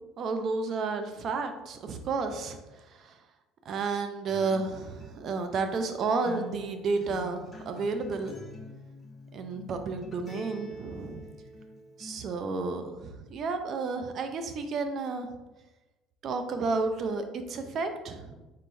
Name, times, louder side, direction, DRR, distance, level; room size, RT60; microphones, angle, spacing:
voice 1, 0.2-2.6 3.0-3.1 3.7-8.3 9.3-11.2 12.0-15.3 16.2-18.3, right 4 dB, 50° right, 7 dB, 0.5 m, -31 dB
Acoustic guitar, 4.3-12.3, left 2 dB, 25° left, 0.9 m, -46 dB
3.8 x 3.8 x 2.6 m, 1.1 s
supercardioid pair, 85°, 0 cm